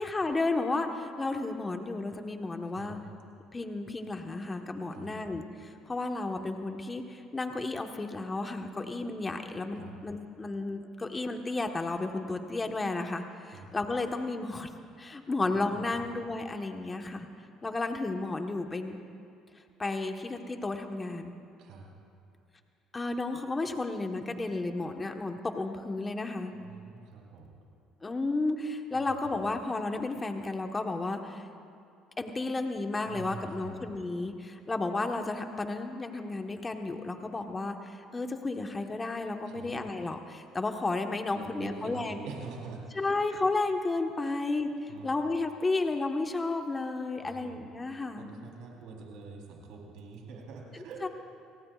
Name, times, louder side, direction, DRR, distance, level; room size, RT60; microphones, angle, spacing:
voice 1, 0.0-3.0 3.5-14.7 15.0-17.3 17.6-19.0 19.8-21.3 22.9-26.5 28.0-31.5 32.2-42.2 42.9-48.3 51.0-51.1, left 3 dB, 25° left, 5 dB, 1.3 m, -33 dB
voice 2, 15.4-16.0 21.6-21.9 26.5-27.6 28.9-29.1 33.1-33.7 39.5-39.7 41.3-43.2 44.2-44.4 44.9-45.1 47.2-47.6 48.2-51.0, right 4 dB, 70° right, -1 dB, 3.8 m, -45 dB
29.0 x 18.5 x 2.5 m, 2.5 s
supercardioid pair, 80°, 0 cm